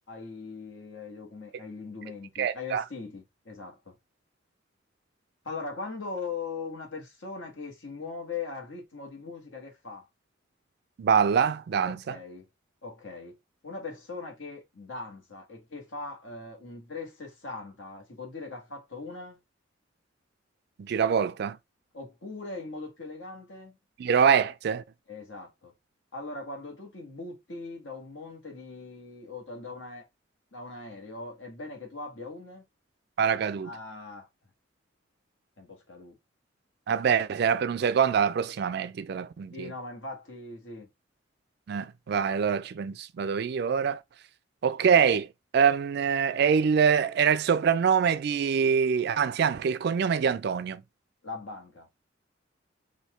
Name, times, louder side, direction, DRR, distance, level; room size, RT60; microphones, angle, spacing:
voice 1, 0.1-4.0 5.4-10.1 11.8-12.5 12.8-13.4 13.6-19.4 21.9-23.8 25.1-25.7 26.1-30.0 30.5-32.6 33.6-34.3 35.6-36.1 39.5-40.9 51.2-51.9, left 3 dB, 75° left, 1.6 m, -40 dB
voice 2, 2.4-2.8 11.0-12.2 20.8-21.6 24.0-24.8 33.2-33.7 36.9-39.7 41.7-44.0 44.6-45.3 45.5-50.8, right 7 dB, 55° right, 0.3 m, -24 dB
4.3 x 2.6 x 3.1 m
head